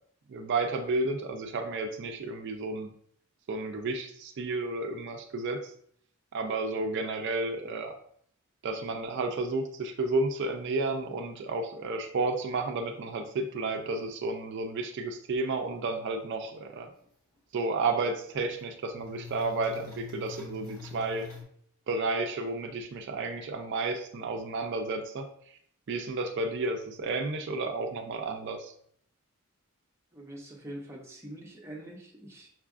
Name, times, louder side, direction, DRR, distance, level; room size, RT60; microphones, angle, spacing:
voice 1, 0.3-2.9 3.5-5.7 6.3-7.9 8.6-16.9 17.5-21.3 21.9-25.3 25.9-28.7, right 3 dB, 55° right, 5 dB, 0.4 m, -32 dB
sound 1, 17.0-17.1 17.3-17.4 18.0-18.6 18.9-21.4, left 6 dB, 15° left, 1.3 m, -45 dB
voice 2, 30.1-32.5, right 1 dB, 10° right, -1 dB, 0.7 m, -44 dB
5.9 x 2.4 x 2.4 m, 0.65 s
head